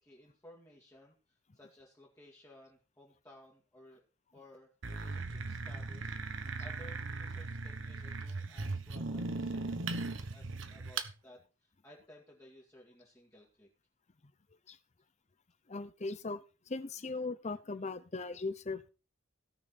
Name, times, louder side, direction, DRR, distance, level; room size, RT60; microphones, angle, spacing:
voice 1, 0.0-4.0 4.3-13.7, left 1 dB, 15° left, -3 dB, 2.5 m, -58 dB
sound 1, 4.8-11.1, right 3 dB, 65° right, 1.1 m, -38 dB
voice 2, 15.7-16.4 16.7-18.9, left 3 dB, 35° left, 13 dB, 0.7 m, -38 dB
17.5 x 6.3 x 4.3 m, 0.33 s
head